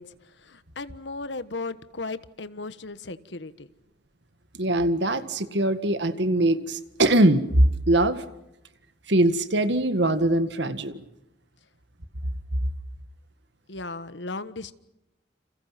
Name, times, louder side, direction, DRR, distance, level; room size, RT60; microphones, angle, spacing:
voice 1, 0.0-3.7 13.7-14.7, left 3 dB, 80° left, 13 dB, 1.4 m, -36 dB
voice 2, 4.6-8.2 9.1-11.0, right 1 dB, 75° right, 11 dB, 1.9 m, -22 dB
30.0 x 28.5 x 5.9 m, 0.90 s
head